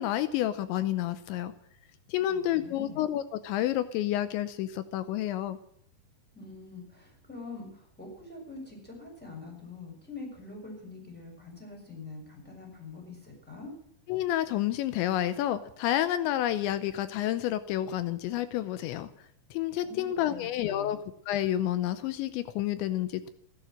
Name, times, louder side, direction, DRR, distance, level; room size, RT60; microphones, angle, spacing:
voice 1, 0.0-1.5 2.1-5.6 14.1-19.1 19.5-21.0 21.3-23.3, left 12 dB, 85° left, 13 dB, 3.1 m, -29 dB
voice 2, 2.2-3.0 6.3-13.7 19.8-21.0, left 3 dB, ahead, -1 dB, 6.8 m, -45 dB
16.0 x 12.0 x 7.8 m, 0.70 s
omnidirectional pair, 5.2 m